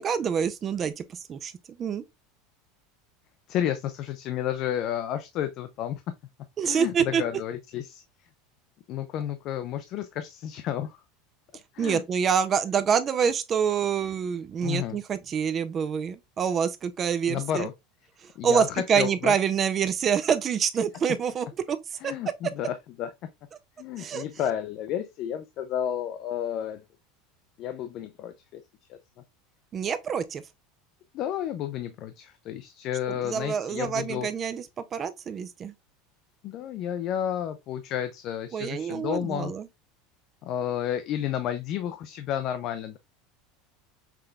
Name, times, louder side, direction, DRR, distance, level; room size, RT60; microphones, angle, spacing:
voice 1, 0.0-1.5 1.8-2.0 6.6-7.2 11.8-17.7 18.2-21.8 22.0-22.1 24.0-24.2 29.7-30.4 33.1-34.7 34.9-35.7 38.5-39.7, right 7 dB, 20° right, 0.4 m, -26 dB
voice 2, 3.5-6.1 6.6-8.0 8.9-11.0 11.7-12.0 14.6-15.0 17.3-17.7 18.4-18.7 18.9-19.3 22.0-23.1 23.8-26.8 27.6-28.6 28.9-29.0 31.1-34.3 36.4-39.5 40.4-43.0, left 10 dB, 35° left, 0.4 m, -31 dB
5.8 x 3.3 x 2.3 m
supercardioid pair, 170°, 0 cm